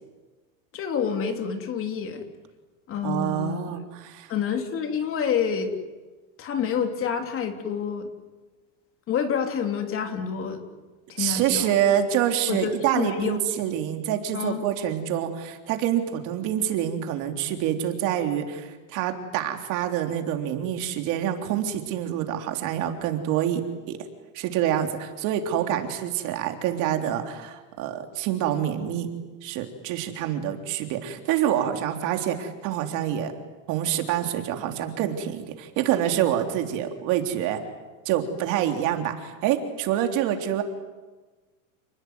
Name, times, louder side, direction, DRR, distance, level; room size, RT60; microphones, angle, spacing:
voice 1, 0.7-2.3 2.9-3.8 4.3-5.7 6.4-8.1 9.1-10.6 11.1-11.8 12.5-13.4 14.3-14.6, left 7 dB, 35° left, 5 dB, 3.2 m, -28 dB
voice 2, 3.0-4.3 11.2-23.6 23.9-24.0 24.3-29.1 29.4-33.3 33.7-37.6 38.1-40.6, right 10 dB, 50° right, 5 dB, 3.6 m, -26 dB
30.0 x 20.5 x 9.5 m, 1.2 s
supercardioid pair, 150°, 40 cm